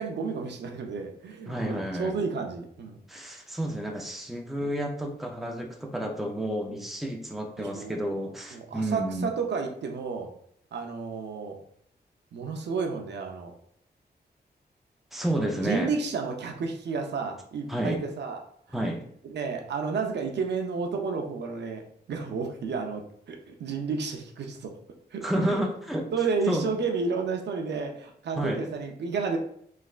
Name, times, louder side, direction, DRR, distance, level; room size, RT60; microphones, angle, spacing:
voice 1, 0.0-3.0 4.6-4.7 6.7-6.8 7.6-8.1 8.5-10.3 10.7-11.6 12.3-13.5 15.6-18.4 19.2-24.8 25.1-25.6 26.1-29.4, right 5 dB, 90° right, 3 dB, 0.5 m, -31 dB
voice 2, 1.5-2.2 3.1-9.3 15.1-15.9 17.7-18.0 18.7-19.0 25.2-26.1 26.5-26.7 28.4-28.6, right 1 dB, ahead, 1 dB, 0.5 m, -30 dB
3.2 x 3.0 x 2.4 m, 0.66 s
wide cardioid pair, 100°, 17 cm